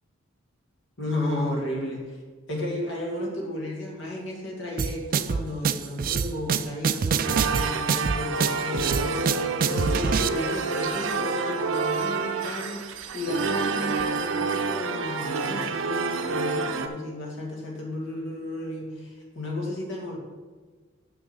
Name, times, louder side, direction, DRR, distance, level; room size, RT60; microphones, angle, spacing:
voice 1, 1.0-2.2 2.5-20.2, left 1 dB, 60° left, -2 dB, 1.9 m, -33 dB
sound 1, 4.8-10.3, right 6 dB, 45° right, 0.3 m, -25 dB
sound 2, 7.2-16.9, right 4 dB, 75° right, 0.7 m, -28 dB
6.3 x 6.1 x 7.1 m, 1.4 s
head